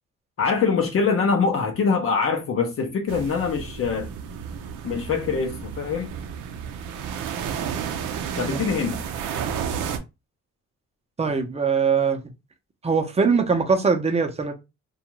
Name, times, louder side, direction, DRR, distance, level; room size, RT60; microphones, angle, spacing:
voice 1, 0.4-4.1 4.8-6.1 8.4-9.0, left 5 dB, 45° left, 0.6 m, -24 dB
sound 1, 3.1-10.0, right 7 dB, 90° right, 0.5 m, -32 dB
voice 2, 11.2-12.2 12.8-14.5, right 5 dB, 20° right, 0.6 m, -21 dB
2.5 x 2.3 x 2.9 m
cardioid pair, 90°, 30 cm